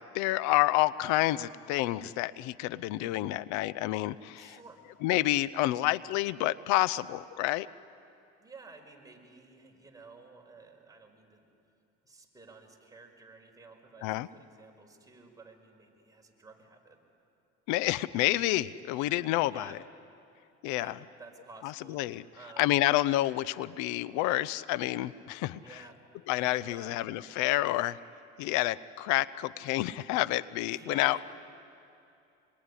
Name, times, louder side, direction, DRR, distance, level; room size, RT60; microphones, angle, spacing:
voice 1, 0.0-4.6 5.0-7.7 14.0-14.3 17.7-19.8 20.6-21.0 21.6-22.2 22.6-25.6 26.3-28.0 28.4-31.2, left 16 dB, 80° left, 18 dB, 0.7 m, -29 dB
voice 2, 4.4-4.8 5.5-5.8 8.4-11.5 12.0-17.0 19.5-19.8 20.6-22.8 25.6-26.0 26.6-26.9 30.6-31.3, right 3 dB, 10° right, 1 dB, 5.3 m, -52 dB
26.5 x 22.5 x 9.9 m, 2.7 s
supercardioid pair, 85°, 29 cm